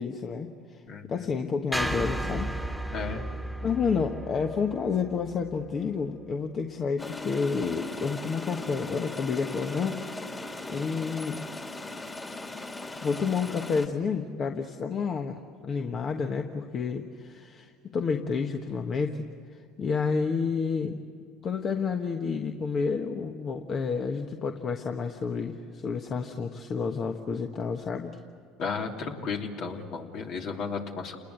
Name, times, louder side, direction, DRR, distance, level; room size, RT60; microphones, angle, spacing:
voice 1, 0.0-0.8 1.1-2.5 2.9-3.0 3.6-10.0 10.7-11.4 13.0-21.0 21.4-28.2, left 5 dB, 40° left, 5 dB, 1.4 m, -30 dB
voice 2, 0.9-1.3 2.9-3.2 28.6-31.2, left 5 dB, 55° left, 2 dB, 3.0 m, -34 dB
sound 1, 1.7-6.0, right 1 dB, ahead, 1.8 m, -34 dB
sound 2, 7.0-13.9, left 2 dB, 20° left, 2.7 m, -38 dB
29.0 x 20.5 x 8.1 m, 2.2 s
supercardioid pair, 90°, 0 cm